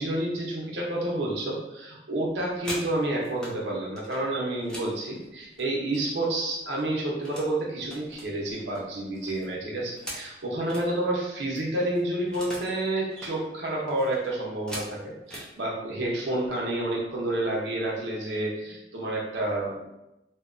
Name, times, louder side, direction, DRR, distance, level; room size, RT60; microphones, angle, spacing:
voice 1, 0.0-19.9, right 1 dB, 85° right, -3 dB, 0.7 m, -29 dB
sound 1, 2.3-3.6 4.0-6.3 6.6-7.5 7.8-10.9 11.3-11.4 11.5-12.8 13.0-13.4 13.9-15.5 16.3-16.5 16.8-17.2 17.5-18.0, equal, 5° left, 0.5 m, -42 dB
2.7 x 2.2 x 2.4 m, 0.92 s
head